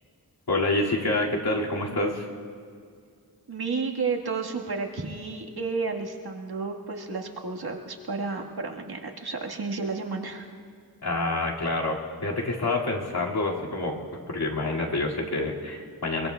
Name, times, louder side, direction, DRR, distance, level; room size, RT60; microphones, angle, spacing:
voice 1, 0.5-2.3 11.0-14.0 14.3-16.3, left 2 dB, 90° left, -4 dB, 2.3 m, -27 dB
voice 2, 3.5-10.5, right 4 dB, 85° right, 0 dB, 1.6 m, -31 dB
24.5 x 23.0 x 2.3 m, 2.2 s
wide cardioid pair, 85°, 37 cm